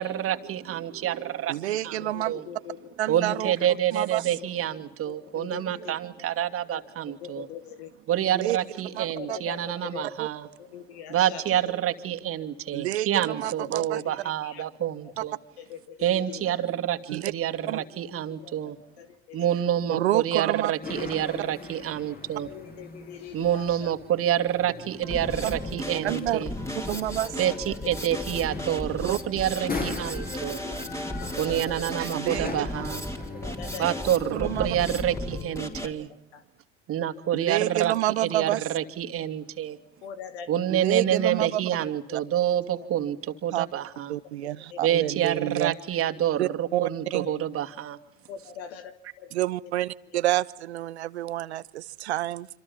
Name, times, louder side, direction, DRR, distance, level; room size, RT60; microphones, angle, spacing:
voice 1, 0.0-2.4 3.1-7.5 8.1-10.5 11.1-15.4 16.0-18.8 19.3-22.5 23.3-26.5 27.4-30.6 31.4-33.1 33.8-36.1 36.9-39.8 40.5-44.1 44.8-48.0, right 11 dB, 45° right, 6 dB, 2.6 m, -27 dB
voice 2, 1.5-2.3 3.0-3.5 3.9-4.3 8.3-8.6 8.9-9.4 10.2-10.3 12.7-14.0 17.1-17.3 17.7-17.8 19.9-20.7 25.4-25.5 26.0-26.4 26.9-27.4 29.0-29.2 32.1-32.7 34.3-34.7 37.3-38.6 40.7-41.8 43.5-43.7 44.1-45.7 46.4-47.3 49.3-52.5, right 14 dB, 85° right, 17 dB, 1.1 m, -28 dB
voice 3, 2.0-2.8 3.1-3.5 5.1-5.9 6.7-6.8 7.2-7.9 9.1-10.0 10.6-11.6 13.1-13.2 13.6-14.2 14.4-14.6 15.6-16.6 17.7-17.8 18.1-19.5 21.4-21.5 22.4-23.9 26.2-26.3 26.9-28.2 30.3-30.9 31.2-31.8 33.4-33.9 35.8-35.9 36.3-36.4 38.5-38.6 40.0-40.6 42.1-42.2 42.5-42.9 44.7-44.8 45.3-45.4 47.3-47.4 48.3-49.3 49.6-49.7, left 8 dB, 80° left, 10 dB, 2.6 m, -42 dB
sound 1, 20.8-34.4, left 3 dB, 30° left, 7.1 m, -41 dB
Drum kit, 25.0-35.9, left 1 dB, 10° left, 4.4 m, -35 dB
27.0 x 26.5 x 7.2 m, 0.70 s
hypercardioid pair, 85°, 32 cm